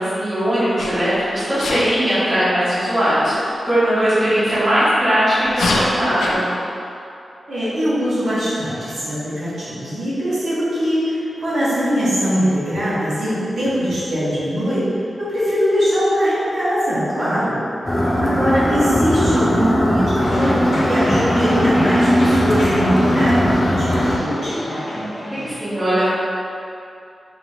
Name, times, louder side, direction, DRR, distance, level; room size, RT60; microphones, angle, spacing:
voice 1, 0.0-6.5 24.9-26.1, equal, 30° right, -12 dB, 1.3 m, -19 dB
Sneeze, 0.8-1.1 1.6-1.9 4.4-4.6 5.5-6.4, left 2 dB, 80° left, 0.4 m, -22 dB
voice 2, 7.5-17.6 18.0-24.8, equal, 70° right, -12 dB, 1.4 m, -21 dB
sound 1, 17.9-24.2, equal, 20° left, 0.4 m, -18 dB
sound 2, 20.2-25.5, left 1 dB, 60° left, 0.8 m, -28 dB
3.0 x 2.9 x 3.9 m, 2.6 s
wide cardioid pair, 120°, 0 cm